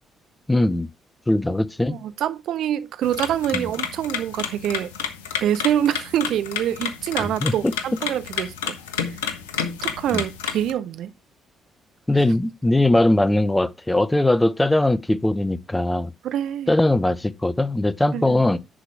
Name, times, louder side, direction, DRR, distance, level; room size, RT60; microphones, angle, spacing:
voice 1, 0.5-0.9 1.3-2.0 3.5-3.7 7.2-7.7 10.1-10.2 12.1-16.1 16.7-18.6, left 1 dB, 10° left, 0.7 m, -20 dB
voice 2, 1.9-4.9 5.4-8.8 9.1-9.2 9.8-11.1 16.2-16.7 18.1-18.4, right 10 dB, 60° right, 0.6 m, -25 dB
sound 1, 3.0-10.7, left 7 dB, 75° left, 0.9 m, -30 dB
10.0 x 4.9 x 4.7 m
figure-of-eight pair, 45°, 0 cm